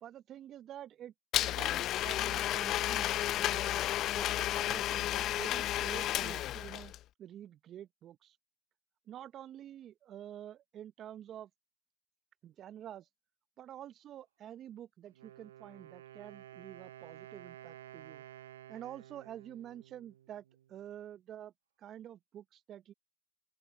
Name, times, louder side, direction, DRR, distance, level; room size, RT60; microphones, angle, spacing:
voice 1, 0.0-3.9 4.1-6.9 7.2-8.4 9.1-11.5 12.4-13.1 13.6-18.2 18.7-20.4 20.7-21.5 21.8-22.9, right 11 dB, 45° right, 0.7 m, -48 dB
Domestic sounds home sounds, 1.3-7.0, left 13 dB, 50° left, 0.5 m, -32 dB
Wind instrument woodwind instrument, 15.1-20.8, right 12 dB, 85° right, 0.4 m, -53 dB
open air
hypercardioid pair, 90°, 0 cm